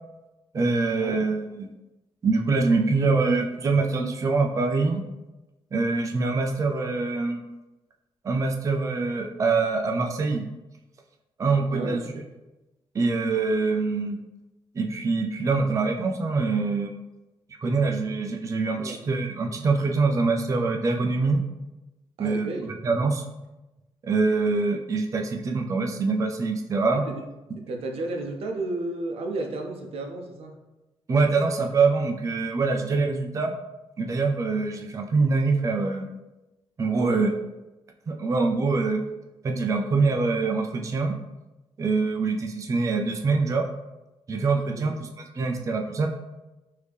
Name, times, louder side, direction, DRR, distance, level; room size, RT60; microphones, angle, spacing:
voice 1, 0.5-1.7 2.2-5.1 5.7-7.4 8.2-10.4 11.4-12.1 12.9-14.2 14.7-16.9 17.6-21.4 22.2-23.2 24.0-27.0 31.1-33.6 34.0-36.1 36.8-37.3 38.1-39.0 39.4-41.2 41.8-43.7 44.3-45.1 45.3-46.1, right 3 dB, 35° right, 2 dB, 0.3 m, -24 dB
voice 2, 11.7-12.2 17.6-17.9 18.8-19.0 22.2-22.7 26.9-27.2 27.6-30.5 36.9-37.2 44.7-44.9, right 2 dB, 90° right, 3 dB, 0.5 m, -33 dB
3.3 x 2.7 x 3.3 m, 1.0 s
wide cardioid pair, 120°, 10 cm